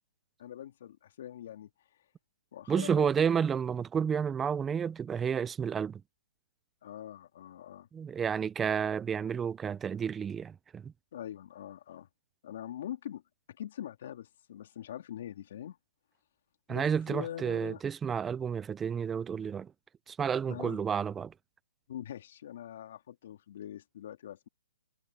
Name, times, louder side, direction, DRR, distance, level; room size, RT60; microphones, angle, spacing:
voice 1, 0.4-2.0 2.5-3.1 6.8-7.9 11.1-12.1 12.4-13.2 13.5-15.8 16.7-17.8 20.5-20.8 21.9-24.5, left 11 dB, 50° left, 3.1 m, -43 dB
voice 2, 2.7-6.0 7.9-10.9 16.7-19.7 20.1-21.3, right 7 dB, 10° right, 0.5 m, -31 dB
hypercardioid pair, 160°, 0 cm